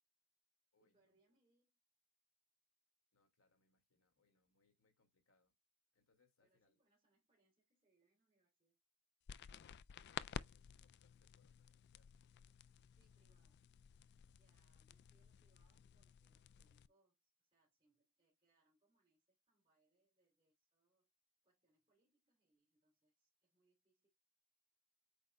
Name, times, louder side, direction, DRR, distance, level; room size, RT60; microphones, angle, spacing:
voice 1, 0.8-1.8 6.4-8.8 12.9-13.7 14.3-21.1 21.4-24.1, right 2 dB, 25° right, 3.0 m, -82 dB
voice 2, 3.1-5.5 5.9-6.8 9.5-12.3, left 3 dB, 75° left, 2.2 m, -80 dB
sound 1, 9.3-16.9, left 8 dB, 50° left, 0.3 m, -54 dB
8.2 x 5.2 x 2.2 m
head